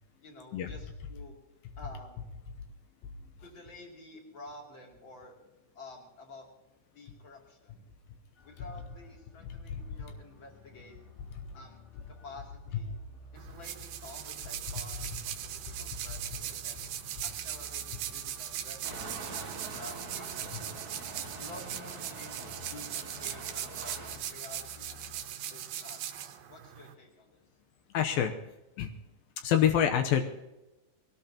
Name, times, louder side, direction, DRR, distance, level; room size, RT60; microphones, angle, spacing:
voice 1, 0.2-1.3 1.8-2.2 3.4-5.4 5.7-6.5 6.9-7.8 8.4-11.0 11.5-11.8 12.1-13.0 13.3-16.9 17.2-20.5 21.4-24.9 25.5-26.0 26.4-27.4, left 2 dB, 35° left, 0 dB, 3.4 m, -50 dB
sound 1, 8.4-25.2, left 2 dB, 65° left, 8.2 m, -55 dB
voice 2, 9.7-10.1 12.7-12.8 20.5-20.6 27.9-28.3 28.8-28.9 29.4-30.2, left 9 dB, 80° left, 5 dB, 2.8 m, -27 dB
sound 2, 13.4-26.9, right 10 dB, 85° right, 2.9 m, -40 dB
sound 3, 18.8-24.2, right 3 dB, 35° right, 1.6 m, -44 dB
22.0 x 18.5 x 3.0 m, 1.0 s
omnidirectional pair, 4.1 m